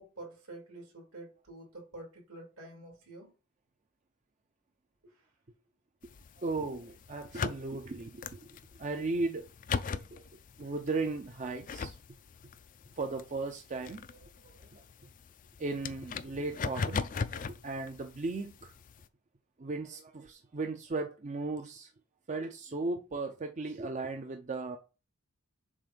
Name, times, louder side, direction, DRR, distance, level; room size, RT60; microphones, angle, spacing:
voice 1, 0.0-3.3 5.0-5.1, right 2 dB, 75° right, 3.0 m, -48 dB
sound 1, 6.0-19.1, left 5 dB, 35° left, 0.4 m, -40 dB
voice 2, 6.4-9.5 9.9-10.2 10.6-12.0 13.0-14.8 15.6-17.1 17.5-18.7 19.6-21.9 22.3-24.8, right 3 dB, 35° right, 0.5 m, -36 dB
7.3 x 2.6 x 5.2 m
head